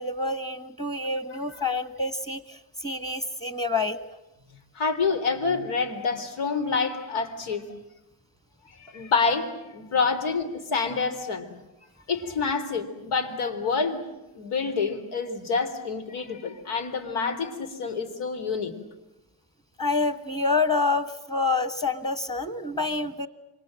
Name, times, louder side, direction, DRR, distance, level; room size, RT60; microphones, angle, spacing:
voice 1, 0.0-4.1 19.8-23.3, left 3 dB, 10° left, 11 dB, 1.5 m, -27 dB
voice 2, 4.8-7.6 8.8-11.5 12.1-14.0 14.4-18.7, left 4 dB, 80° left, 8 dB, 3.8 m, -27 dB
27.5 x 24.5 x 7.6 m, 0.98 s
cardioid pair, 135°, 49 cm